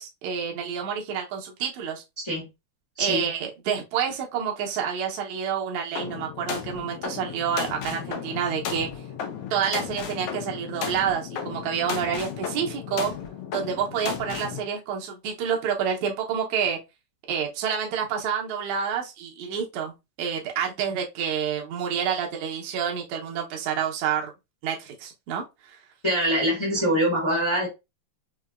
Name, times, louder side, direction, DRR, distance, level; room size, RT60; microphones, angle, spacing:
voice 1, 0.0-2.0 3.0-8.9 9.5-13.1 13.5-16.8 17.3-24.3 24.6-25.8, right 7 dB, 70° right, 2.1 m, -28 dB
voice 2, 2.2-2.5 3.0-3.3 26.0-27.7, equal, 30° left, 0.5 m, -24 dB
sound 1, 5.9-14.6, left 7 dB, 75° left, 1.4 m, -34 dB
5.6 x 2.8 x 2.5 m
omnidirectional pair, 3.9 m